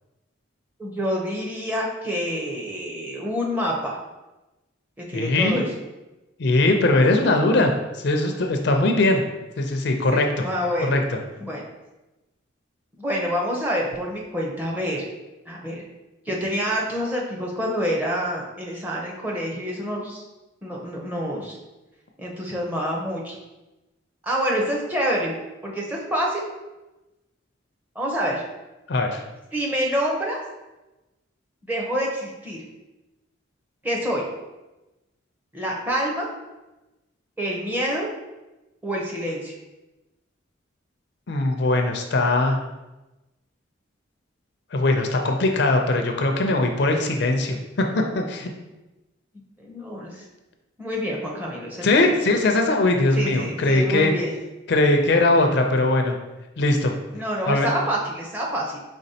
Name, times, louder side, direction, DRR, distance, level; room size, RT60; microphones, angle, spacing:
voice 1, 0.8-4.0 5.0-5.7 10.1-11.0 11.4-11.6 13.0-15.0 15.5-15.8 16.3-20.2 20.6-21.6 22.2-23.4 24.2-25.4 25.6-26.4 27.9-28.4 29.5-30.4 31.6-32.6 33.8-34.3 35.5-36.3 37.4-38.1 38.8-39.5 49.6-50.2 50.8-52.2 53.2-54.3 57.1-58.8, equal, 10° right, -2 dB, 0.7 m, -27 dB
voice 2, 5.1-5.6 6.4-9.2 9.6-10.4 10.9-11.0 28.9-29.2 41.3-42.6 44.7-47.9 48.1-48.5 51.8-54.1 54.7-56.2 56.6-57.0 57.5-57.7, left 2 dB, 60° left, 3 dB, 0.5 m, -20 dB
5.0 x 3.6 x 2.8 m, 1.0 s
head